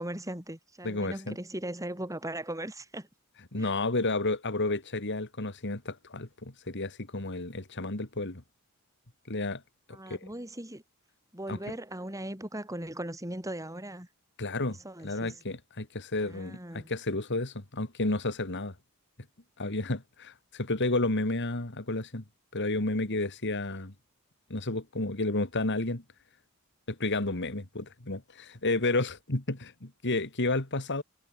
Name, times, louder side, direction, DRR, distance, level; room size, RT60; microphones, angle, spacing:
voice 1, 0.0-3.1 3.6-3.7 9.9-10.8 11.3-14.1 14.8-15.4 16.2-16.9, right 1 dB, 15° right, 5.6 m, -38 dB
voice 2, 0.8-1.4 3.5-8.4 9.3-9.6 9.9-10.2 11.5-11.8 14.4-14.8 15.0-18.7 19.6-22.2 22.5-23.9 24.5-26.0 26.9-31.0, left 2 dB, 55° left, 2.5 m, -31 dB
head